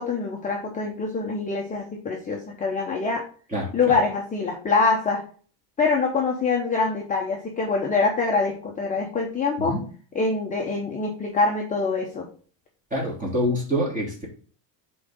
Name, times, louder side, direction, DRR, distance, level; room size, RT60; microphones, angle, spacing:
voice 1, 0.0-3.2 3.7-5.2 5.8-9.7 10.1-12.3, left 4 dB, 15° left, -1 dB, 0.8 m, -24 dB
voice 2, 12.9-14.3, equal, 15° right, -3 dB, 2.8 m, -25 dB
10.5 x 3.9 x 3.6 m, 0.42 s
cardioid pair, 150°, 49 cm